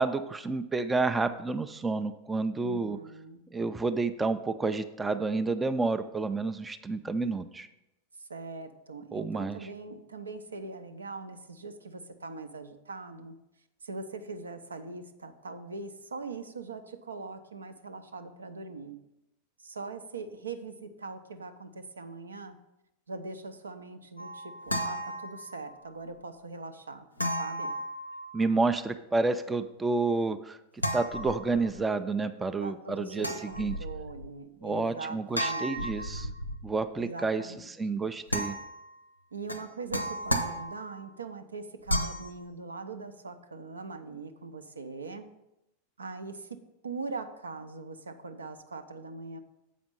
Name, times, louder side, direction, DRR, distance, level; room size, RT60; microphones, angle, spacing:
voice 1, 0.0-3.0 3.5-7.7 9.1-9.6 28.3-30.6 30.9-33.7 34.6-36.3 36.6-38.6, right 3 dB, 10° right, 10 dB, 0.4 m, -30 dB
voice 2, 2.6-3.4 8.2-13.3 13.8-19.0 19.6-22.6 23.1-27.1 27.4-27.7 32.6-35.9 36.2-36.4 37.0-37.7 38.0-38.1 39.3-45.3 46.0-49.4, right 3 dB, 75° right, 9 dB, 0.6 m, -41 dB
sound 1, 24.2-25.8 27.2-28.6 30.8-31.8 33.2-34.3 35.3-36.8 38.3-38.9 39.5-41.1 41.9-42.3, equal, 90° left, 0.6 m, -34 dB
7.5 x 5.1 x 5.2 m, 0.89 s
figure-of-eight pair, 90°, 0 cm